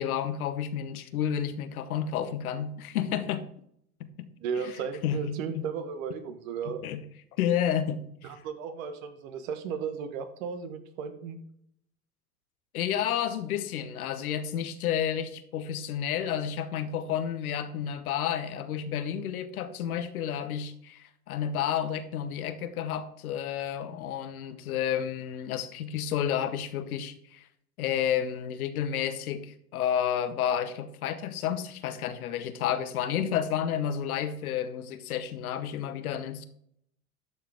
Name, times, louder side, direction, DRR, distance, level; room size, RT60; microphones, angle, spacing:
voice 1, 0.0-3.5 4.0-4.3 4.6-4.7 5.0-5.7 6.6-7.0 7.4-8.3 12.7-27.4 27.8-36.4, left 9 dB, 70° left, 1.1 m, -31 dB
voice 2, 4.4-6.8 8.2-11.4, right 6 dB, 60° right, 1.6 m, -35 dB
12.0 x 6.9 x 3.6 m
hypercardioid pair, 85°, 45 cm